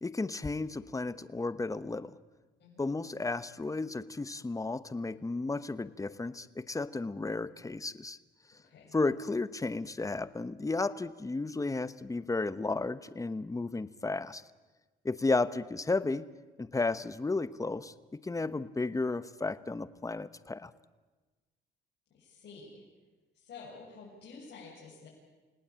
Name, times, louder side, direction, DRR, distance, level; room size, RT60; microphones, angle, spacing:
voice 1, 0.0-2.1 2.8-8.2 8.9-14.4 15.0-16.3 16.6-20.7, left 3 dB, 15° left, 15 dB, 1.0 m, -33 dB
voice 2, 8.6-8.9 22.1-22.8 23.3-25.1, left 4 dB, 55° left, -6 dB, 7.7 m, -50 dB
29.0 x 19.0 x 8.9 m, 1.3 s
cardioid pair, 90°, 20 cm